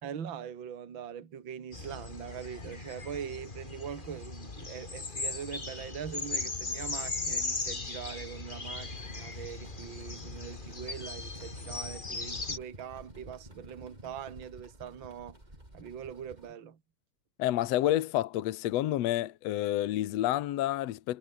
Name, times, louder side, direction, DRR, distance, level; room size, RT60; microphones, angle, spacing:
voice 1, 0.0-15.4 15.7-16.8, right 8 dB, 40° right, 2.5 m, -42 dB
sound 1, 1.7-12.6, left 3 dB, 20° left, 1.5 m, -38 dB
sound 2, 8.7-16.5, right 1 dB, 10° right, 6.9 m, -51 dB
voice 2, 17.4-21.2, left 14 dB, 65° left, 1.8 m, -29 dB
omnidirectional pair, 3.8 m